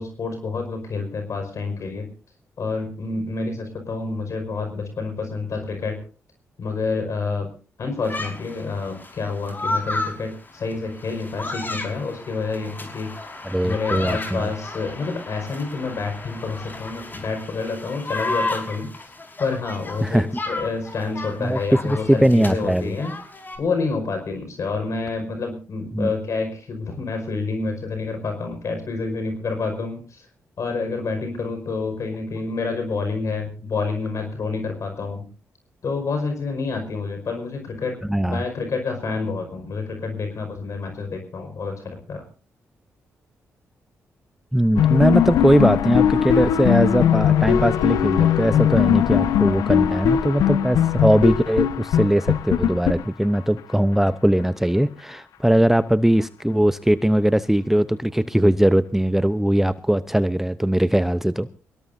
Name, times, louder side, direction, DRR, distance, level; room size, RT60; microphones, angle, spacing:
voice 1, 0.0-2.1 2.6-6.0 6.6-7.5 7.8-13.2 13.6-19.1 19.4-23.1 23.6-30.3 30.6-35.3 35.8-42.2, left 4 dB, 60° left, 5 dB, 5.2 m, -28 dB
sound 1, 8.0-23.6, left 2 dB, 35° left, 5.1 m, -33 dB
voice 2, 13.4-14.5 20.0-20.3 21.4-21.6 21.8-23.0 25.9-26.1 38.1-38.4 44.5-61.5, right 1 dB, 5° right, 14 dB, 0.7 m, -20 dB
sound 2, 44.8-53.6, left 10 dB, 85° left, 1.1 m, -20 dB
23.0 x 17.5 x 2.7 m, 0.35 s
supercardioid pair, 55°, 6 cm